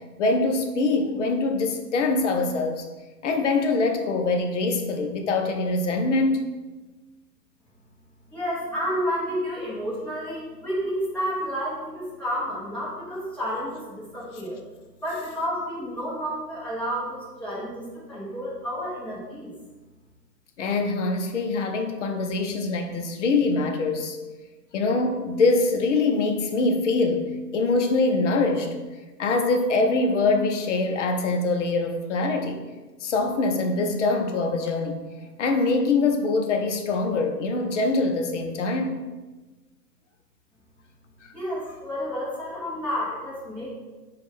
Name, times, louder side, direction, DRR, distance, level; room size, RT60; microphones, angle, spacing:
voice 1, 0.2-2.8 3.2-6.5 20.6-24.2 24.7-27.3 27.5-28.7 29.2-32.6 33.0-35.0 35.4-39.0, left 3 dB, 50° left, 5 dB, 0.6 m, -24 dB
voice 2, 8.3-14.6 15.0-19.5 41.3-43.7, equal, 5° left, -9 dB, 0.8 m, -30 dB
4.9 x 2.4 x 3.6 m, 1.2 s
hypercardioid pair, 130°, 50 cm